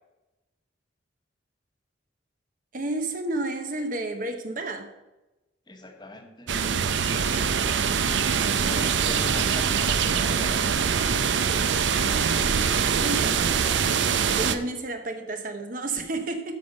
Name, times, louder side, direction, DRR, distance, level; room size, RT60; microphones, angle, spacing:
voice 1, 2.7-4.9 8.4-8.7 12.9-13.5 14.2-16.6, right 2 dB, 45° right, 6 dB, 0.9 m, -31 dB
voice 2, 5.7-7.6 8.6-10.8, left 2 dB, 25° left, 4 dB, 1.1 m, -42 dB
sound 1, 6.5-14.6, right 6 dB, 75° right, 0.6 m, -23 dB
12.5 x 5.3 x 5.2 m, 1.0 s
head